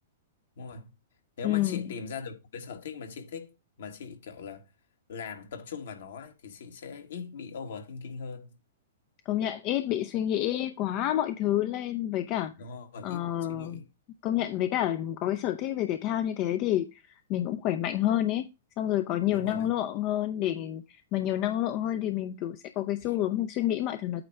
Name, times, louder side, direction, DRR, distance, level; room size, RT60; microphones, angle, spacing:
voice 1, 0.6-0.9 1.4-4.7 5.1-8.6 12.6-13.9 19.3-19.7 23.0-23.2, left 5 dB, 60° left, 1.7 m, -41 dB
voice 2, 1.4-1.8 9.3-12.5 13.0-13.8 14.2-17.0 17.3-18.5 18.8-24.3, left 12 dB, 35° left, 0.6 m, -29 dB
8.9 x 3.1 x 5.8 m
figure-of-eight pair, 105°, 0 cm